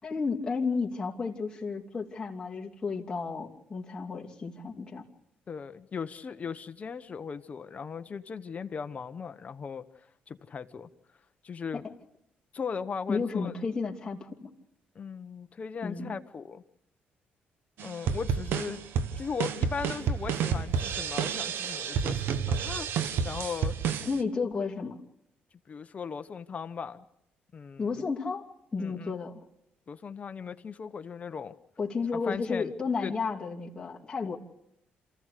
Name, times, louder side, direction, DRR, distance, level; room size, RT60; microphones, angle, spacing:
voice 1, 0.0-5.0 13.1-14.5 15.8-16.1 24.0-25.0 27.8-28.4 28.7-29.4 31.8-34.3, left 4 dB, 25° left, -3 dB, 2.8 m, -32 dB
voice 2, 5.5-9.8 10.3-10.9 11.4-11.8 12.5-13.5 14.9-16.6 17.8-18.8 19.2-23.7 25.7-27.0 27.5-27.9 28.8-29.1 29.9-31.5 32.1-32.7 33.0-33.1, left 6 dB, 40° left, 10 dB, 1.0 m, -38 dB
sound 1, 17.8-24.2, right 7 dB, 80° right, 1.2 m, -30 dB
27.5 x 15.0 x 6.7 m, 0.82 s
cardioid pair, 95°, 4 cm